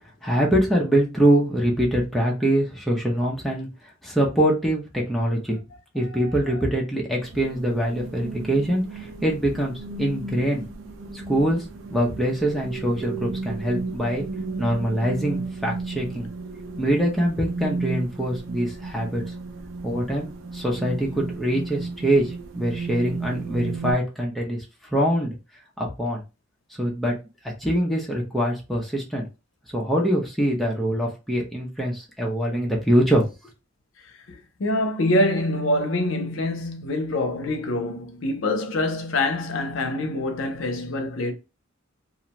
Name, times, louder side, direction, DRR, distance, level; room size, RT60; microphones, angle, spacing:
voice 1, 0.2-3.7 4.0-5.6 5.9-10.6 11.1-11.6 11.9-14.2 14.6-16.3 16.8-19.2 19.8-20.3 20.5-24.6 24.9-25.3 25.8-26.2 26.8-27.2 27.6-29.3 29.7-33.3, right 1 dB, ahead, 0.5 m, -24 dB
sound 1, 7.2-23.9, right 3 dB, 70° right, 0.5 m, -34 dB
voice 2, 34.3-41.3, left 1 dB, 70° left, 0.6 m, -25 dB
2.4 x 2.1 x 2.8 m
head